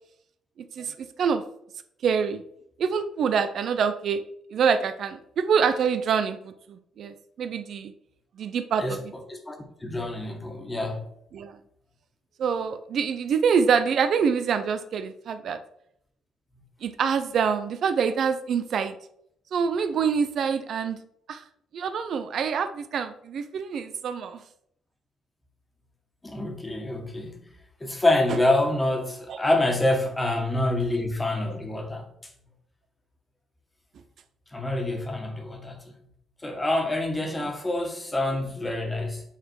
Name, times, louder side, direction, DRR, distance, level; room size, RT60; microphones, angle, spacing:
voice 1, 0.8-1.4 2.0-2.4 2.8-4.2 4.5-7.9 8.4-9.0 11.3-11.6 12.4-15.6 16.8-19.0 19.5-21.0 21.3-21.4 21.7-24.4 29.3-29.4, right 6 dB, 65° right, 0.6 m, -25 dB
voice 2, 8.8-11.0 26.2-27.4 27.8-32.1 34.5-35.9 36.4-39.2, left 2 dB, 15° left, 1.7 m, -27 dB
8.0 x 4.1 x 4.7 m
cardioid pair, 90°, 0 cm